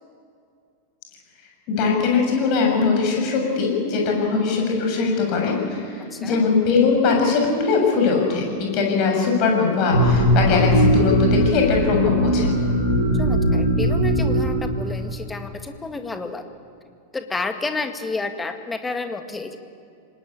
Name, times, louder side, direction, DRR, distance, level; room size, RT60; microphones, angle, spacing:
voice 1, 1.7-12.6, left 4 dB, 40° left, 1 dB, 6.9 m, -21 dB
voice 2, 6.1-6.4 13.2-16.4 17.1-19.6, left 3 dB, 10° left, 7 dB, 2.0 m, -30 dB
sound 1, 9.9-15.2, equal, 85° right, 4.9 m, -20 dB
25.5 x 20.0 x 8.7 m, 2.5 s
figure-of-eight pair, 90°, 0 cm